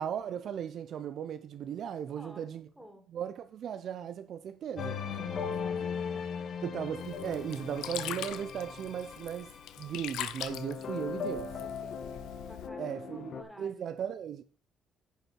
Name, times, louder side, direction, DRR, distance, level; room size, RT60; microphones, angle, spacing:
voice 1, 0.0-2.7 3.1-5.0 6.6-9.5 9.8-11.5 12.8-13.3 13.6-14.4, right 9 dB, 50° right, 0.7 m, -37 dB
voice 2, 2.1-3.1 5.2-6.4 10.7-12.2 12.4-14.0, equal, ahead, 2.9 m, -53 dB
sound 1, 4.8-10.0 10.5-13.4, left 6 dB, 40° left, 1.4 m, -38 dB
Sink (filling or washing), 7.0-12.7, left 11 dB, 75° left, 1.0 m, -42 dB
10.0 x 6.9 x 4.5 m
cardioid pair, 155°, 0 cm